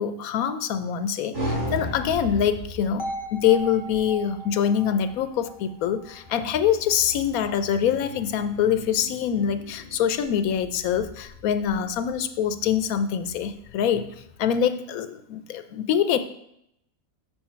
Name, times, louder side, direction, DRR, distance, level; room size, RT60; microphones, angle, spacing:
voice 1, 0.0-14.1 14.4-16.2, left 8 dB, 90° left, 10 dB, 1.1 m, -24 dB
sound 1, 1.3-14.5, left 1 dB, 70° right, 4.1 m, -38 dB
sound 2, 3.0-7.0, right 1 dB, 25° left, 0.8 m, -38 dB
7.3 x 6.1 x 4.4 m, 0.75 s
omnidirectional pair, 1.5 m